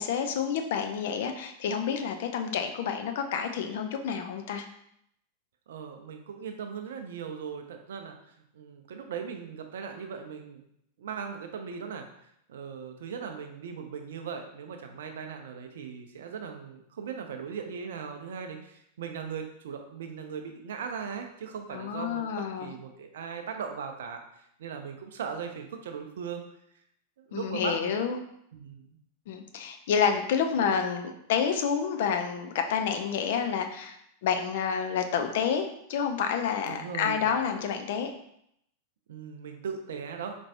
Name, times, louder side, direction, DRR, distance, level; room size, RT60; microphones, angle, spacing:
voice 1, 0.0-4.6 21.7-22.7 27.3-28.2 29.3-34.0 34.2-38.1, left 7 dB, 55° left, 6 dB, 0.4 m, -29 dB
voice 2, 5.7-8.2 8.5-10.6 11.0-12.1 12.5-24.2 24.6-26.5 27.2-28.0 28.5-29.0 36.7-37.4 39.1-40.4, right 6 dB, 60° right, 5 dB, 0.5 m, -38 dB
4.3 x 3.1 x 2.6 m, 0.74 s
figure-of-eight pair, 90°, 0 cm